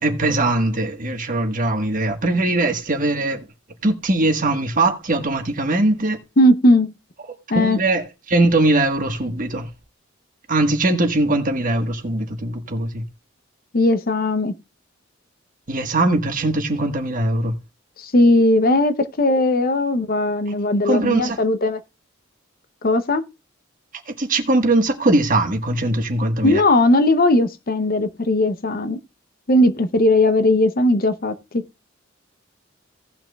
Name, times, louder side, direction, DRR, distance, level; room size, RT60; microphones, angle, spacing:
voice 1, 0.0-3.4 3.8-6.2 7.5-9.7 10.5-13.0 15.7-17.5 20.8-21.4 24.1-26.6, right 2 dB, 40° right, 1.4 m, -20 dB
voice 2, 6.4-6.9 7.5-7.8 13.7-14.6 18.0-21.8 22.8-23.2 26.4-29.0 29.5-31.6, left 1 dB, 45° left, 0.7 m, -18 dB
17.5 x 5.9 x 2.3 m
head